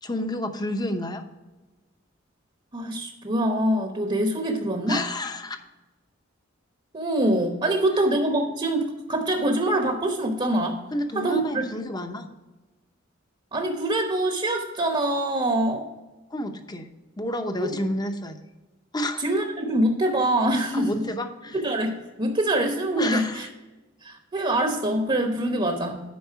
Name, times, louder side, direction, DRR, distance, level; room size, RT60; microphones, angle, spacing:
voice 1, 0.0-1.2 4.9-5.6 7.6-7.8 10.9-12.3 16.3-16.9 17.2-18.4 18.9-19.2 20.7-21.6 23.0-23.5 25.5-25.6, left 1 dB, 20° left, 7 dB, 0.8 m, -30 dB
voice 2, 2.7-5.0 6.9-10.8 11.1-11.6 13.5-15.9 17.6-17.7 19.2-21.0 21.5-23.5 24.0-26.0, right 1 dB, 30° right, 4 dB, 0.9 m, -24 dB
9.4 x 5.4 x 5.7 m, 1.1 s
head